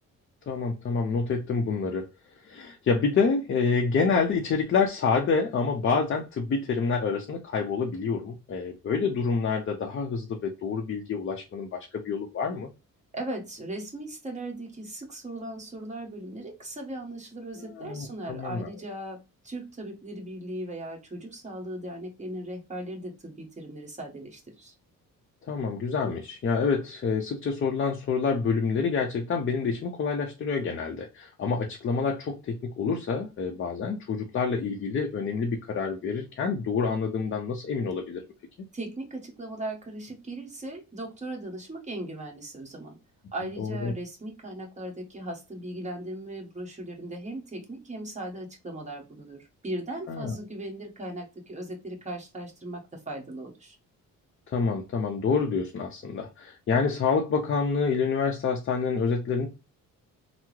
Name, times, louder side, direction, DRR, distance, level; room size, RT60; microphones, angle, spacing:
voice 1, 0.5-2.1 2.4-12.7 17.6-18.7 25.5-38.2 43.6-43.9 50.1-50.3 54.5-59.5, left 5 dB, 35° left, 0.5 m, -27 dB
voice 2, 13.1-24.7 38.7-43.0 43.3-53.8, right 1 dB, 20° right, 1.1 m, -38 dB
3.4 x 2.0 x 3.0 m
cardioid pair, 110°, 34 cm